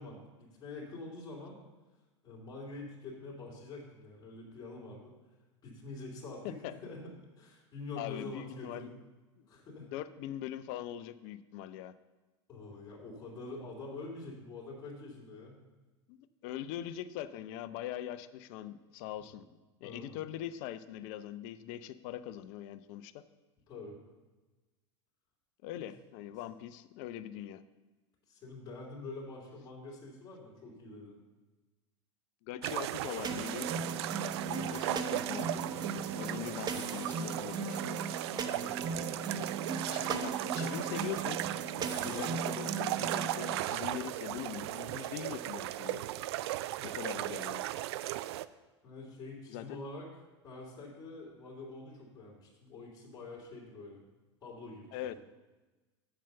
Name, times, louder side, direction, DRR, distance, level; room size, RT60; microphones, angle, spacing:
voice 1, 0.0-1.6 2.2-5.1 5.6-8.9 9.5-9.9 12.5-15.6 19.8-20.1 23.7-24.0 28.3-31.2 34.5-34.8 38.4-38.7 42.0-42.3 47.0-47.2 48.8-50.1 50.4-54.0 54.4-55.2, left 3 dB, 25° left, -6 dB, 3.1 m, -46 dB
voice 2, 8.0-8.9 9.4-9.5 9.9-11.9 16.1-19.4 19.8-23.1 25.6-27.6 32.4-33.7 34.4-35.6 36.1-38.0 39.9-41.4 42.0-46.0 46.8-47.7 49.5-49.7 54.9-55.1, left 11 dB, 50° left, 13 dB, 0.6 m, -42 dB
sound 1, 32.6-48.4, right 15 dB, 60° right, 0.4 m, -37 dB
sound 2, 33.2-43.5, right 4 dB, 25° right, 1.0 m, -38 dB
7.5 x 6.8 x 7.0 m, 1.2 s
hypercardioid pair, 85°, 15 cm